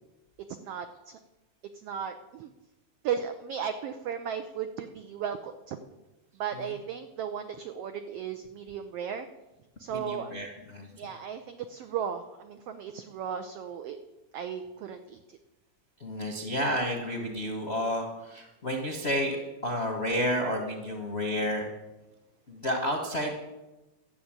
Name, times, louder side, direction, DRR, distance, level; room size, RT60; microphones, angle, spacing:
voice 1, 0.5-1.2 1.7-2.5 3.0-5.8 6.3-9.3 9.8-10.3 11.0-14.0 14.3-15.4, right 8 dB, 80° right, 8 dB, 1.4 m, -35 dB
voice 2, 9.9-10.9 16.0-19.4 19.6-21.7 22.5-23.3, equal, 45° left, 2 dB, 0.8 m, -30 dB
12.5 x 6.8 x 8.9 m, 1.0 s
omnidirectional pair, 3.5 m